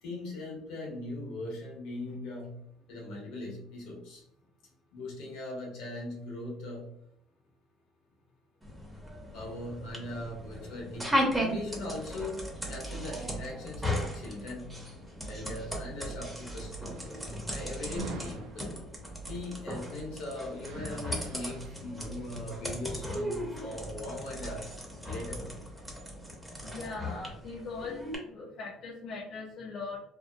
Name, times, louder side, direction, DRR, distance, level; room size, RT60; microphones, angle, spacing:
voice 1, 0.0-2.5 2.9-4.2 4.9-6.9 9.3-12.4 12.7-14.8 15.3-17.0 17.5-18.8 19.3-24.7 25.0-25.5, left 2 dB, 85° left, -2 dB, 1.0 m, -40 dB
sound 1, 8.6-28.2, equal, 5° right, 0.8 m, -37 dB
sound 2, 15.1-23.9, right 2 dB, 75° right, 0.4 m, -48 dB
voice 2, 26.6-30.0, left 4 dB, 55° left, -3 dB, 0.5 m, -40 dB
2.7 x 2.0 x 2.2 m, 0.71 s
supercardioid pair, 95°, 0 cm